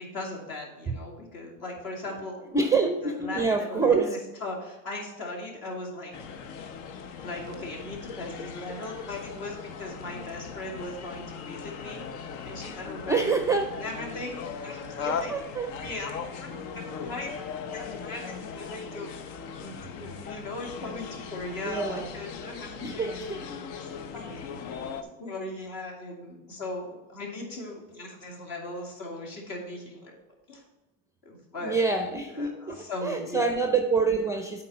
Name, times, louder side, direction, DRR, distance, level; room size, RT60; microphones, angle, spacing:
voice 1, 0.0-2.4 3.0-6.1 7.2-12.0 12.4-13.3 13.7-15.3 15.7-19.1 19.6-23.3 24.1-24.5 24.9-30.2 30.5-30.6 31.2-31.8 32.3-33.5, left 2 dB, 55° left, 0 dB, 2.6 m, -38 dB
voice 2, 2.5-4.2 13.1-13.8 15.0-15.7 17.7-18.0 21.6-22.1 22.8-23.5 31.6-34.6, right 4 dB, 10° right, 6 dB, 0.4 m, -26 dB
sound 1, 6.1-25.0, left 6 dB, 75° left, 0.9 m, -39 dB
8.3 x 4.3 x 5.5 m, 1.1 s
supercardioid pair, 120°, 41 cm